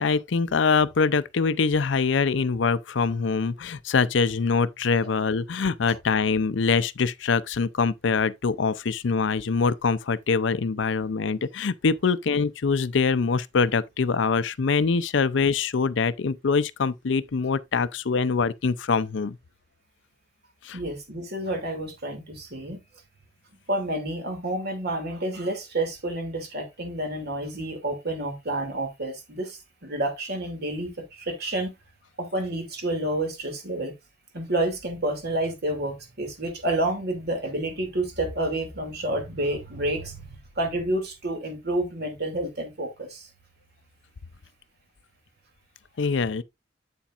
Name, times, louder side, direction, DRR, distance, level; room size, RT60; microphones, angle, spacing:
voice 1, 0.0-19.4 20.6-20.8 46.0-46.4, left 5 dB, 70° left, 0.5 m, -24 dB
voice 2, 20.7-22.8 23.7-31.7 32.2-33.9 34.3-43.3, right 1 dB, 60° right, 2.6 m, -29 dB
8.5 x 7.1 x 2.5 m
head